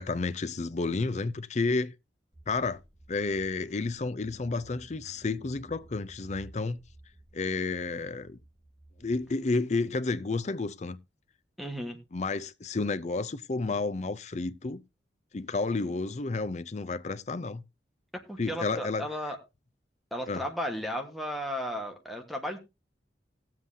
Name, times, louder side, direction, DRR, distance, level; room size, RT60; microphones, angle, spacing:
voice 1, 0.0-1.9 2.5-2.8 3.1-6.8 7.3-8.4 9.0-11.0 12.1-14.8 15.3-17.6 18.4-19.1 20.3-20.4, left 3 dB, 40° left, 0.5 m, -31 dB
Car / Engine, 2.3-9.4, right 1 dB, 20° right, 5.6 m, -54 dB
voice 2, 11.6-12.0 18.1-19.4 20.1-22.6, equal, ahead, 1.3 m, -34 dB
18.5 x 7.6 x 2.7 m
head